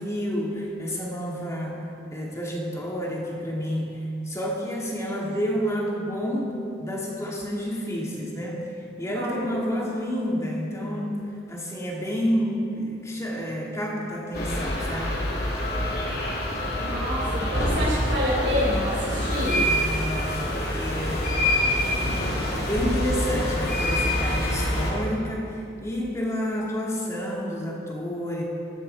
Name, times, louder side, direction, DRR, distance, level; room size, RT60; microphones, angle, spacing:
voice 1, 0.0-8.7 9.0-15.3 19.6-21.4 22.5-28.4, equal, 15° left, -2 dB, 2.4 m, -29 dB
voice 2, 9.1-9.9 16.8-19.6, equal, 80° right, -9 dB, 4.6 m, -28 dB
sound 1, 14.3-24.9, left 1 dB, 60° left, 3.3 m, -26 dB
18.5 x 14.5 x 4.7 m, 2.6 s
head